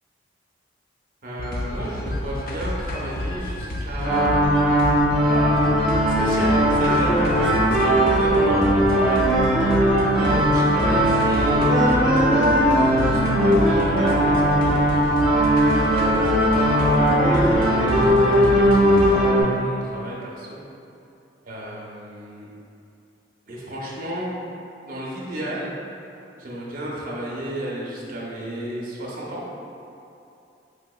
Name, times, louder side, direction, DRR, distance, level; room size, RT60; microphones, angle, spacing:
voice 1, 1.2-4.4 5.3-5.8 6.1-15.0 15.7-20.6 21.4-22.5 23.5-24.3 24.8-25.7 26.4-29.4, right 1 dB, 50° right, -5 dB, 0.5 m, -32 dB
sound 1, 1.4-19.1, left 1 dB, 50° left, 0.3 m, -30 dB
sound 2, 4.0-19.4, equal, ahead, 0.7 m, -19 dB
3.2 x 2.8 x 2.2 m, 2.7 s
head